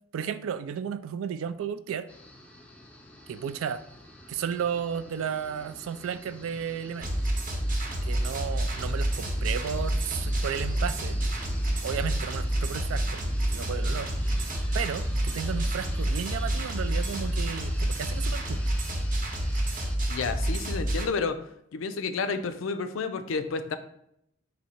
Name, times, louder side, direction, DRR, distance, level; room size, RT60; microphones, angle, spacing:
voice 1, 0.1-2.1 3.3-3.8 4.3-7.1 8.0-11.2 11.8-13.2 13.5-14.1 14.7-18.6, right 7 dB, 90° right, 13 dB, 0.3 m, -33 dB
sound 1, 2.1-20.0, left 1 dB, 5° left, 0.4 m, -45 dB
sound 2, 7.0-21.1, right 1 dB, 40° right, 0.7 m, -28 dB
voice 2, 20.1-21.4 21.7-23.8, left 4 dB, 80° left, 9 dB, 0.4 m, -30 dB
4.1 x 2.7 x 4.3 m, 0.75 s
head